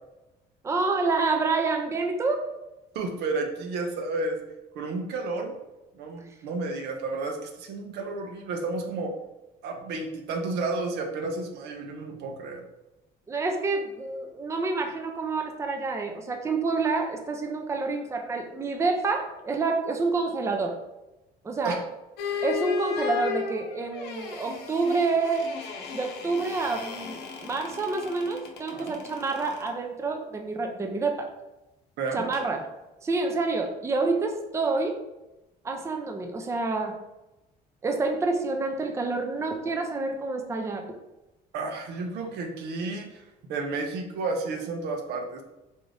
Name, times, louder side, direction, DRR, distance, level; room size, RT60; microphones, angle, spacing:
voice 1, 0.6-2.5 13.3-20.8 21.4-21.8 22.4-25.5 25.9-31.3 32.1-32.7 33.0-35.0 35.6-37.0 37.8-41.0, right 3 dB, 15° right, 3 dB, 0.4 m, -28 dB
voice 2, 2.9-4.4 4.7-5.6 5.9-9.1 9.6-12.6 21.6-21.8 28.7-29.0 32.0-32.3 41.5-43.2 43.5-45.4, right 3 dB, 80° right, 3 dB, 0.7 m, -31 dB
sound 1, 22.2-29.7 32.3-32.5, left 6 dB, 80° left, 0.6 m, -35 dB
3.6 x 2.6 x 3.2 m, 0.97 s
cardioid pair, 110°, 17 cm